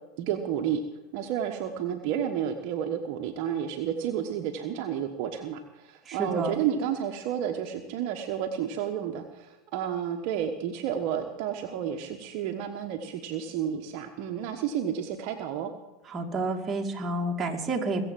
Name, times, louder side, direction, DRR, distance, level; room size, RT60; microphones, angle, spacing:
voice 1, 0.2-0.8 1.1-15.7, right 9 dB, 60° right, 5 dB, 1.3 m, -31 dB
voice 2, 6.1-6.5 16.1-18.0, right 2 dB, 25° right, 1 dB, 2.5 m, -29 dB
21.5 x 8.0 x 7.5 m, 1.1 s
hypercardioid pair, 95°, 0 cm